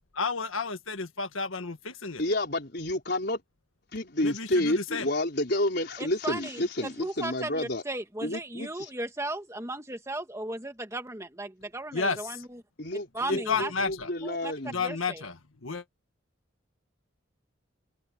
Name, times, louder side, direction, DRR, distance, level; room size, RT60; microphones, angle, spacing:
voice 1, 0.1-2.2 4.2-5.1 11.9-12.2 13.3-14.1 14.7-15.3 15.6-15.8, left 4 dB, 90° left, 1.7 m, -31 dB
voice 2, 2.2-3.4 3.9-7.8 8.2-8.9 12.8-14.8, left 1 dB, 55° left, 4.6 m, -30 dB
voice 3, 6.0-6.6 7.0-12.6 13.1-13.7 14.2-14.5 14.8-15.2, right 2 dB, 15° right, 1.8 m, -36 dB
open air
head